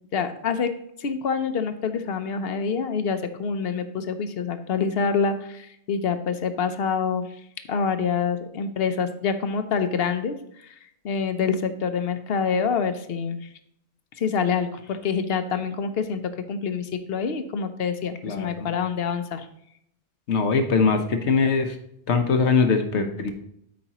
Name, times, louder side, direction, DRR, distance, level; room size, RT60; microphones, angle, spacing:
voice 1, 0.1-0.7 1.0-7.3 7.7-10.7 11.0-13.5 14.2-16.2 16.5-19.5, left 6 dB, 65° left, 9 dB, 0.9 m, -26 dB
voice 2, 18.2-18.7 20.3-21.8 22.1-23.3, left 4 dB, 80° left, 6 dB, 1.2 m, -22 dB
12.5 x 5.1 x 3.0 m, 0.73 s
omnidirectional pair, 1.2 m